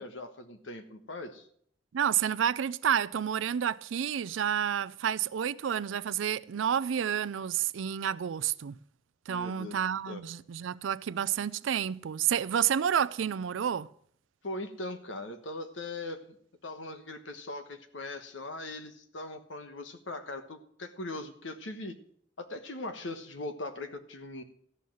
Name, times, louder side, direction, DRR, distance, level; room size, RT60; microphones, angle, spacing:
voice 1, 0.0-1.4 9.3-9.7 10.1-10.2 14.4-16.2 16.6-22.0 22.4-24.4, left 2 dB, 80° left, 1.2 m, -40 dB
voice 2, 1.9-8.8 9.3-13.9, right 9 dB, 85° right, 0.4 m, -30 dB
14.0 x 5.6 x 7.6 m
head